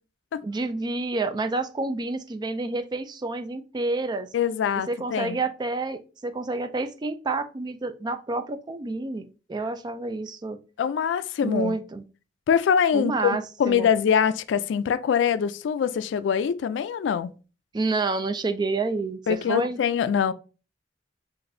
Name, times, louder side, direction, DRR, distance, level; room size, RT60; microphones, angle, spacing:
voice 1, 0.4-4.3 4.9-10.6 11.4-12.0 12.9-13.9 17.7-19.8, right 3 dB, 25° right, 0.4 m, -29 dB
voice 2, 4.3-5.4 10.8-11.7 12.5-17.3 19.3-20.3, left 7 dB, 80° left, 0.3 m, -24 dB
5.9 x 2.5 x 2.6 m
head